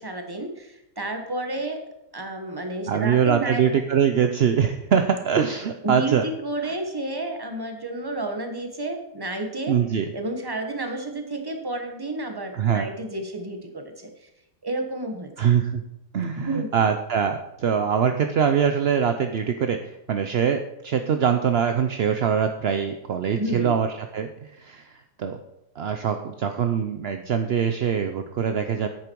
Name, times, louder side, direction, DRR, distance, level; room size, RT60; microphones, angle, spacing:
voice 1, 0.0-1.8 2.1-3.6 5.8-9.7 10.1-14.3 14.6-15.3 16.4-16.7 23.4-23.8, right 2 dB, 15° right, 4 dB, 1.3 m, -31 dB
voice 2, 2.9-6.2 6.6-6.7 9.7-10.1 12.5-12.9 15.4-15.8 16.1-25.4 25.8-28.9, right 7 dB, 60° right, 7 dB, 0.6 m, -23 dB
10.5 x 8.6 x 4.6 m, 0.87 s
omnidirectional pair, 1.7 m